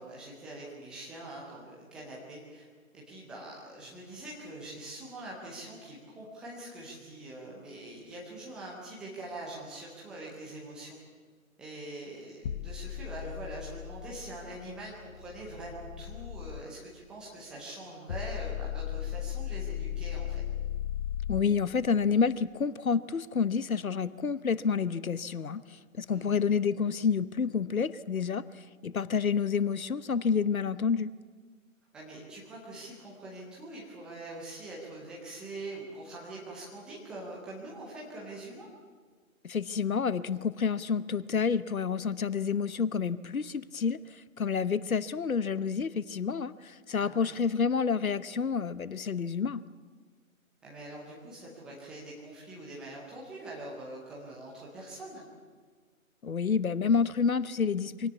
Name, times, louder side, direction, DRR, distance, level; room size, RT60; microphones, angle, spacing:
voice 1, 0.0-2.7 2.9-11.0 11.6-20.4 26.1-26.4 31.9-38.7 47.0-47.3 50.6-55.2, right 2 dB, ahead, -5 dB, 0.6 m, -44 dB
sound 1, 12.4-16.6 18.1-21.4, left 10 dB, 30° left, 0.9 m, -37 dB
voice 2, 21.3-31.1 39.4-49.6 56.2-58.1, left 6 dB, 75° left, 17 dB, 1.0 m, -29 dB
23.5 x 17.5 x 8.3 m, 1.6 s
figure-of-eight pair, 140°, 42 cm